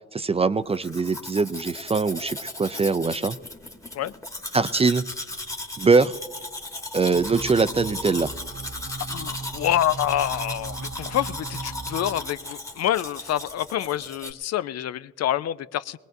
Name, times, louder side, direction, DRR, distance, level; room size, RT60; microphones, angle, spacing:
voice 1, 0.1-3.4 4.5-5.0 5.8-6.2 6.9-8.3, right 4 dB, 20° right, 13 dB, 0.4 m, -22 dB
Domestic sounds home sounds, 0.7-14.3, left 2 dB, 10° left, 1.2 m, -36 dB
sound 1, 7.1-12.3, right 4 dB, 55° right, 0.7 m, -38 dB
voice 2, 9.1-16.0, left 11 dB, 60° left, 15 dB, 0.5 m, -27 dB
21.5 x 19.5 x 2.6 m, 1.3 s
cardioid pair, 85°, 29 cm